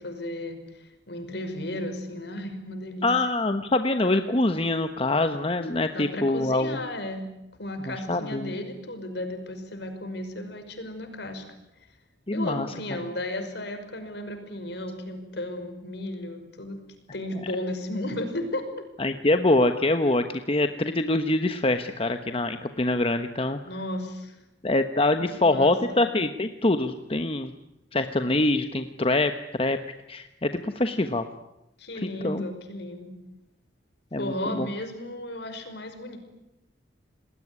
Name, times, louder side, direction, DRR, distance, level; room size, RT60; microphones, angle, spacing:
voice 1, 0.0-3.1 5.9-7.3 7.6-11.4 12.3-16.8 17.1-18.7 23.6-24.4 25.3-26.1 31.8-33.1 34.2-36.2, left 1 dB, 65° left, 7 dB, 5.7 m, -34 dB
voice 2, 3.0-6.8 7.9-8.5 12.3-12.7 19.0-23.6 24.6-27.5 27.9-29.8 30.1-31.3 32.0-32.4 34.1-34.7, left 2 dB, 30° left, 8 dB, 1.2 m, -24 dB
28.5 x 20.0 x 9.8 m, 0.90 s
head